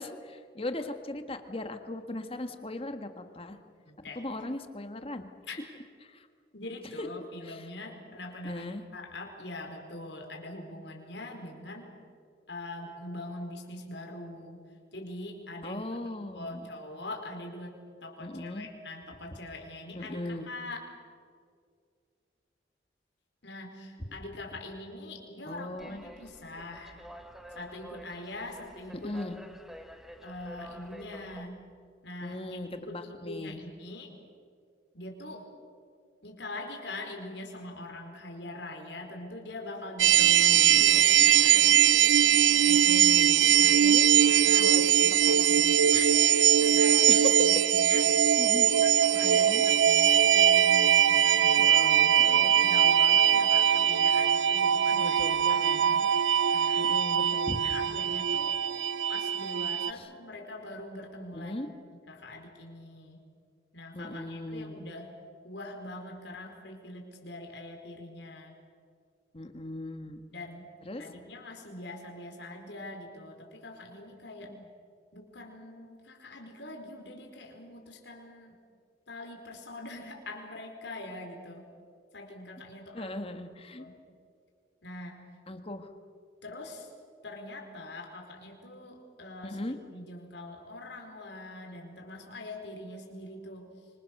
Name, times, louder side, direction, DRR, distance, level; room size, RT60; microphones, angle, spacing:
voice 1, 0.0-3.6 4.1-5.3 6.0-6.3 7.0-7.1 7.4-7.7 8.4-8.8 15.6-16.7 18.2-18.7 19.9-20.5 25.5-26.0 29.0-29.3 32.2-33.6 40.1-40.9 42.7-43.4 43.7-44.1 44.6-45.8 47.1-47.6 47.9-48.7 49.2-49.6 51.6-52.5 54.9-56.1 56.8-57.8 59.9-60.1 61.3-61.7 63.9-64.8 69.3-70.2 70.8-71.1 74.5-74.7 82.9-83.9 85.5-85.9 89.4-89.7, left 1 dB, 30° left, 7 dB, 1.6 m, -38 dB
voice 2, 3.8-4.2 5.5-5.6 6.5-11.9 12.5-14.6 14.9-15.8 16.3-20.9 23.4-27.0 27.5-29.1 30.2-31.6 32.0-32.4 32.7-34.1 34.9-35.5 36.2-41.8 43.6-43.8 44.1-44.8 45.9-48.1 48.5-55.6 56.5-56.9 57.6-58.5 59.1-61.5 62.1-63.2 63.7-65.1 65.4-68.5 70.3-70.7 71.0-74.6 75.1-78.5 79.1-81.7 82.1-83.2 83.8-84.0 84.8-85.2 86.4-86.9 87.2-89.6 89.9-93.7, left 2 dB, 75° left, 2 dB, 4.7 m, -43 dB
sound 1, 25.8-31.4, equal, ahead, 1.4 m, -49 dB
sound 2, 40.0-59.9, right 10 dB, 90° right, 0.6 m, -22 dB
26.5 x 25.5 x 6.7 m, 2.1 s
head